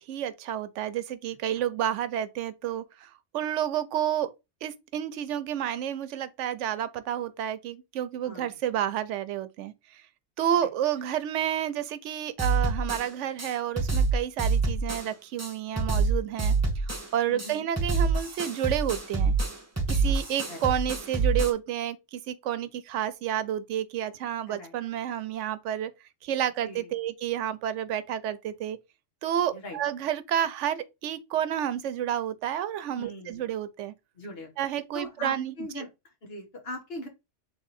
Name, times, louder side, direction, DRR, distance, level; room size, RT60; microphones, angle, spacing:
voice 1, 0.1-4.3 4.6-9.7 10.4-16.5 17.1-19.3 19.9-25.9 26.2-28.8 29.2-33.9 34.6-35.8, right 10 dB, 85° right, 0.9 m, -30 dB
voice 2, 8.2-8.5 17.3-17.7 20.0-20.2 20.5-20.6 24.5-24.8 26.6-26.9 29.5-29.8 32.9-33.4 34.1-34.5 34.9-35.9 36.2-37.1, left 1 dB, 55° left, 1.5 m, -40 dB
sound 1, 12.4-13.1 13.4-13.5 13.8-15.1 15.4-15.5 15.8-17.1 17.4-17.5 17.8-21.5, right 4 dB, 15° right, 0.8 m, -26 dB
3.6 x 3.1 x 4.1 m
omnidirectional pair, 1.2 m